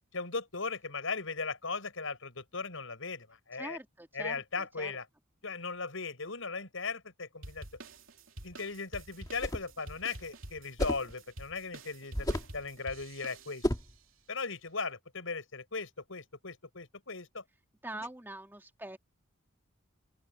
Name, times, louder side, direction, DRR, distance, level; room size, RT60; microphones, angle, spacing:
voice 1, 0.1-3.8 4.1-5.0 5.4-7.7 8.4-13.7 14.3-17.4, left 4 dB, 70° left, 5.8 m, -38 dB
voice 2, 3.6-4.9 17.8-19.0, right 1 dB, 10° right, 2.5 m, -44 dB
sound 1, 7.4-13.9, right 2 dB, 75° right, 2.9 m, -49 dB
sound 2, 9.3-9.7 10.8-11.1 12.1-12.6 13.6-14.0, left 1 dB, 20° left, 2.1 m, -32 dB
open air
head